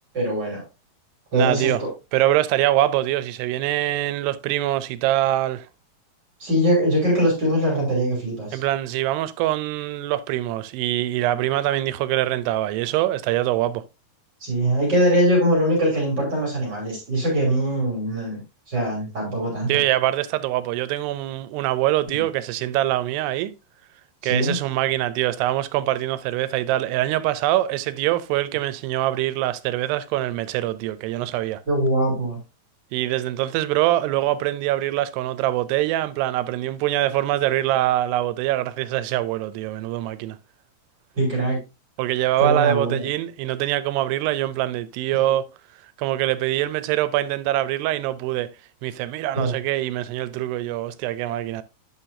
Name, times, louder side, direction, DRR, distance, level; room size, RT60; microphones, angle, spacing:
voice 1, 0.1-0.6 1.3-1.9 6.4-8.6 14.4-18.4 18.7-19.8 22.1-22.2 24.2-24.6 31.7-32.4 41.2-41.6 42.4-43.0 49.3-49.5, right 1 dB, 30° right, 3.4 m, -22 dB
voice 2, 1.3-1.8 2.1-5.7 8.5-13.8 19.7-23.5 24.2-31.6 32.9-40.4 42.0-45.5 46.0-48.5 48.8-51.6, right 14 dB, 90° right, 2.7 m, -24 dB
9.5 x 5.7 x 2.7 m
omnidirectional pair, 4.6 m